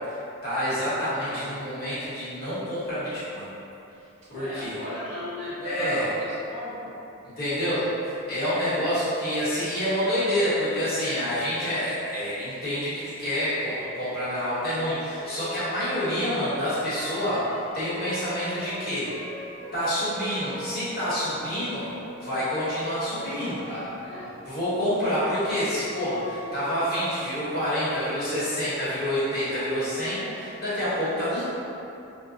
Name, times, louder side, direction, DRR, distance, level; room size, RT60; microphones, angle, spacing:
voice 1, 0.1-3.5 4.3-4.7 5.6-6.1 7.4-19.1 19.7-21.9 22.2-23.6 24.4-31.4, equal, 45° left, -12 dB, 1.0 m, -28 dB
voice 2, 4.2-7.2 8.6-8.9 23.2-24.3, left 1 dB, 30° right, -13 dB, 0.8 m, -37 dB
sound 1, 15.2-24.4 24.7-30.2, equal, 20° left, 1.0 m, -41 dB
2.5 x 2.1 x 3.7 m, 2.8 s
head